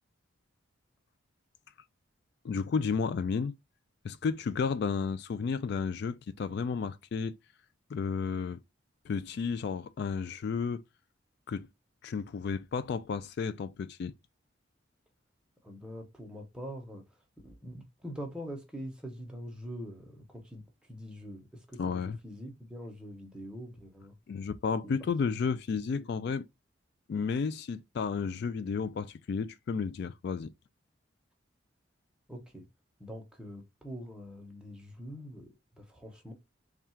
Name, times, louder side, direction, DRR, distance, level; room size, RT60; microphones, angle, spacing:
voice 1, 2.4-3.5 4.0-7.3 7.9-8.6 9.1-10.8 11.5-11.7 12.0-14.1 21.8-22.2 24.3-26.4 27.1-30.5, left 5 dB, 55° left, 0.3 m, -32 dB
voice 2, 15.6-17.0 17.4-20.6 20.9-24.2 24.8-25.0 25.2-25.3 25.7-26.1 32.3-32.6 33.0-36.3, equal, 5° right, 0.8 m, -44 dB
3.4 x 2.4 x 4.3 m
head